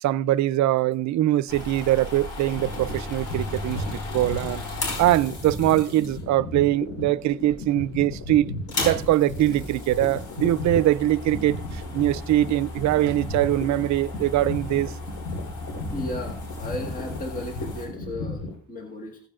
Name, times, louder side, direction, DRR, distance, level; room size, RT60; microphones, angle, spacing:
voice 1, 0.0-14.9, right 14 dB, 65° right, 0.4 m, -23 dB
sound 1, 1.5-6.4 7.2-7.6 7.9-8.0 8.5-17.9, left 2 dB, 80° left, 5.3 m, -36 dB
sound 2, 2.4-18.5, left 2 dB, 60° left, 3.8 m, -35 dB
voice 2, 15.9-19.2, left 1 dB, 25° left, 1.6 m, -35 dB
16.0 x 8.7 x 2.4 m
cardioid pair, 90°, 30 cm